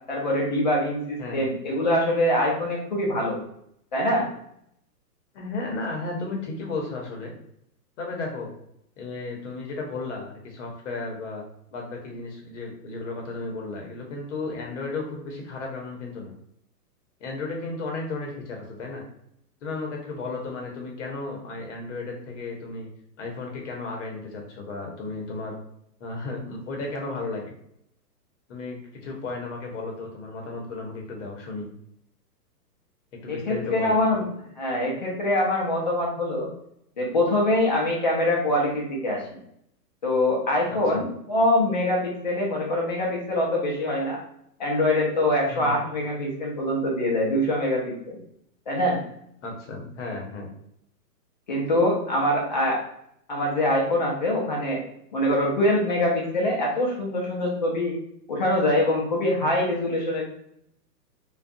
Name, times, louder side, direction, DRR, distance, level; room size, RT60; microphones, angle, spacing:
voice 1, 0.1-3.4 3.9-4.3 33.3-34.3 34.6-36.5 37.0-39.2 40.0-44.2 44.6-48.2 48.7-49.0 51.5-52.8 53.3-54.8 55.1-57.9 58.3-60.2, left 1 dB, 30° left, -2 dB, 0.4 m, -24 dB
voice 2, 5.3-7.3 8.0-8.5 9.0-11.4 11.7-16.3 17.2-19.0 19.6-22.9 23.2-25.6 26.0-27.5 28.5-31.7 33.2-34.0 40.7-41.0 45.5-45.7 49.4-50.5, left 3 dB, 45° left, 0 dB, 0.9 m, -34 dB
2.3 x 2.3 x 2.6 m, 0.73 s
hypercardioid pair, 150°, 49 cm